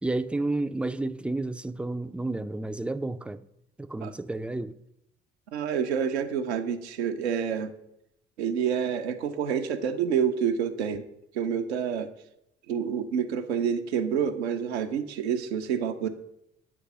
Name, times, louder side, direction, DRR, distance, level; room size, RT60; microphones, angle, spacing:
voice 1, 0.0-3.5 3.8-4.8, right 2 dB, 5° right, 0.3 m, -31 dB
voice 2, 5.5-7.7 8.4-11.1 11.3-12.1 12.7-16.1, right 7 dB, 85° right, 0.6 m, -28 dB
9.3 x 3.2 x 5.9 m
hypercardioid pair, 50°, 32 cm